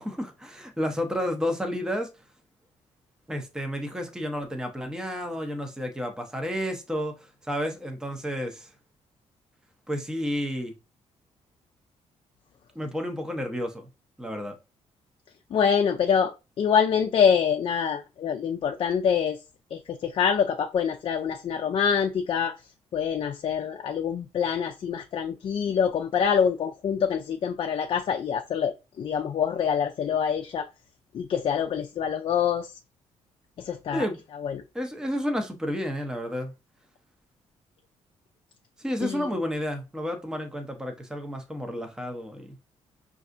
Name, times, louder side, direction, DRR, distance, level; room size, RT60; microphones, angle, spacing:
voice 1, 0.0-2.1 3.3-8.7 9.9-10.7 12.8-13.9 14.2-14.6 33.9-34.2 34.7-36.5 38.8-42.6, equal, 5° right, 0.6 m, -31 dB
voice 2, 15.5-19.4 19.7-22.6 22.9-30.7 31.1-32.7 33.6-34.0 34.4-34.6 39.0-39.3, left 7 dB, 50° left, 0.4 m, -25 dB
5.3 x 2.5 x 2.5 m
cardioid pair, 115°, 12 cm